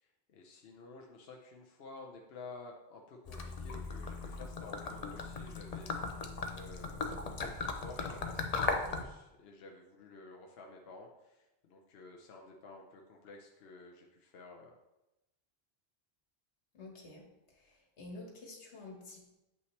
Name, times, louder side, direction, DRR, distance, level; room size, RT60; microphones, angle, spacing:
voice 1, 0.0-14.8, left 3 dB, 65° left, 1 dB, 0.9 m, -52 dB
Gurgling / Liquid, 3.3-9.0, left 4 dB, 40° left, 0.6 m, -38 dB
voice 2, 16.7-17.2 17.5-19.3, left 2 dB, 85° left, 0 dB, 1.7 m, -49 dB
7.8 x 5.7 x 3.2 m, 0.97 s
omnidirectional pair, 1.1 m